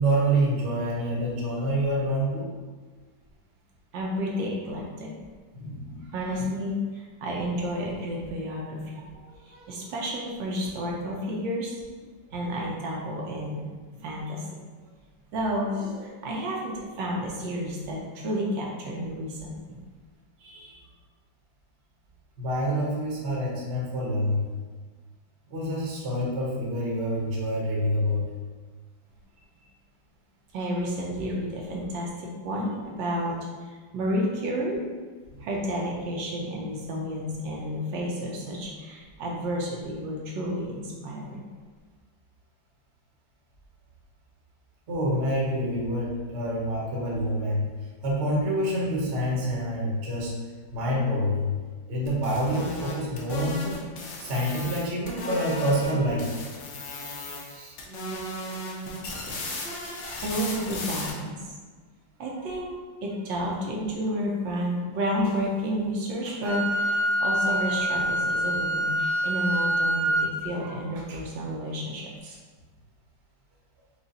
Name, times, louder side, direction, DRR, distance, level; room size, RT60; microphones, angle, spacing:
voice 1, 0.0-2.5 5.5-6.1 20.4-20.8 22.4-24.5 25.5-28.3 35.3-35.4 44.9-47.6 48.0-50.3 50.7-51.5 51.9-53.8 54.2-56.3 57.5-57.7, equal, 45° right, -4 dB, 1.0 m, -27 dB
voice 2, 3.9-5.1 6.0-11.8 12.3-13.6 13.9-14.5 15.3-19.8 30.5-34.8 35.4-41.4 60.2-61.4 62.2-62.7 63.0-72.4, equal, 75° right, -2 dB, 1.4 m, -31 dB
sound 1, 52.1-55.9 56.2-57.5 57.8-61.1, left 2 dB, 75° left, 1.4 m, -36 dB
Wind instrument woodwind instrument, 66.4-70.3, right 1 dB, 35° left, 1.4 m, -25 dB
4.8 x 2.4 x 3.9 m, 1.4 s
omnidirectional pair, 2.1 m